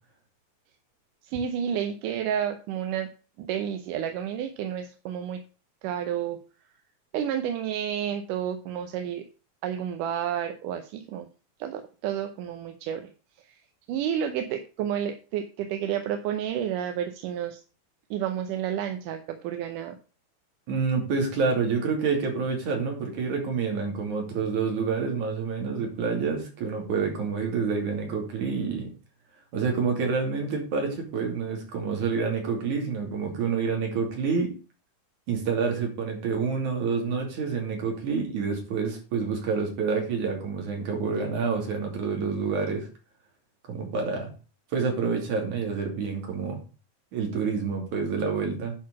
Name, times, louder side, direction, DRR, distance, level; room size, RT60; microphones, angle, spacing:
voice 1, 1.2-3.1 3.4-5.4 5.8-6.4 7.1-9.3 9.6-11.3 11.6-13.1 13.4-13.6 13.9-17.6 18.1-20.0, right 9 dB, 85° right, 7 dB, 2.4 m, -30 dB
voice 2, 20.7-28.9 29.5-34.5 35.3-42.9 43.7-44.3 44.7-46.6 47.1-48.7, right 5 dB, 70° right, 1 dB, 4.1 m, -28 dB
10.5 x 4.7 x 6.0 m, 0.35 s
omnidirectional pair, 3.6 m